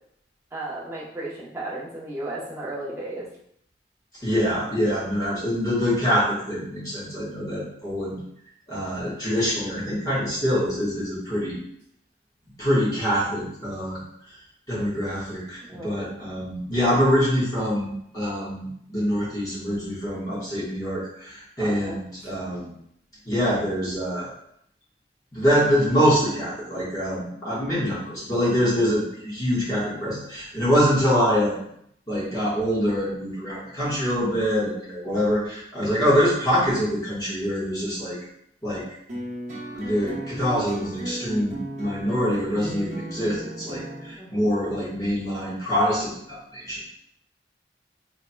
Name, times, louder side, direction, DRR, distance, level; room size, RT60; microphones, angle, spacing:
voice 1, 0.5-3.3 15.7-16.0 21.6-22.0 44.2-44.5, right 2 dB, 15° right, -7 dB, 1.0 m, -34 dB
voice 2, 4.2-8.2 8.7-11.6 12.6-14.0 14.7-22.7 23.2-24.3 25.3-31.6 32.1-38.2 38.6-38.8 39.7-46.9, equal, 20° left, -8 dB, 1.5 m, -25 dB
sound 1, 39.1-44.1, right 1 dB, 40° right, 1.0 m, -35 dB
4.3 x 3.6 x 2.3 m, 0.71 s
head